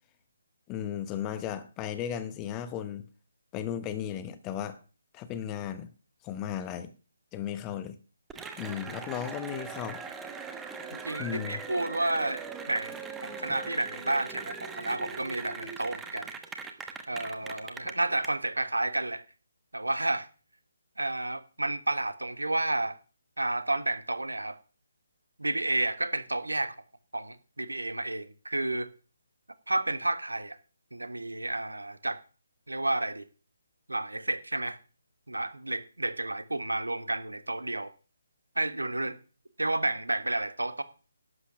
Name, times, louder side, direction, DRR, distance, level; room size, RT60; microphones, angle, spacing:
voice 1, 0.7-3.0 3.5-4.8 5.1-5.9 6.2-6.9 7.3-8.0 8.6-10.0 11.2-11.6, left 9 dB, 15° left, 0.9 m, -35 dB
Cheering / Applause, 8.3-18.3, right 5 dB, 5° right, 1.1 m, -41 dB
voice 2, 10.9-16.3 17.1-19.2 19.7-20.3 21.0-23.0 23.4-24.6 25.4-26.7 27.1-28.9 29.7-30.6 30.9-32.2 32.7-33.2 33.9-34.8 35.3-37.9 38.5-39.1 39.6-40.8, right 2 dB, 75° right, 1.4 m, -31 dB
11.5 x 8.2 x 6.0 m
figure-of-eight pair, 145°, 0 cm